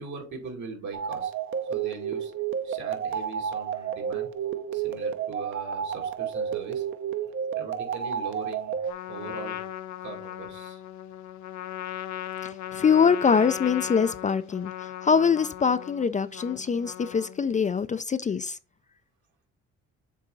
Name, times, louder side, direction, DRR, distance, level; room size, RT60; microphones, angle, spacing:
voice 1, 0.0-1.3 1.7-2.3 2.6-4.3 4.7-6.8 7.6-8.7 9.1-9.6 10.0-10.8, right 4 dB, 75° right, 2.5 m, -40 dB
sound 1, 0.9-8.9, right 8 dB, 45° right, 0.7 m, -31 dB
Trumpet, 8.9-17.6, left 12 dB, 70° left, 0.6 m, -38 dB
voice 2, 12.4-18.6, left 6 dB, 25° left, 0.3 m, -24 dB
7.4 x 3.9 x 3.8 m
cardioid pair, 90°, 30 cm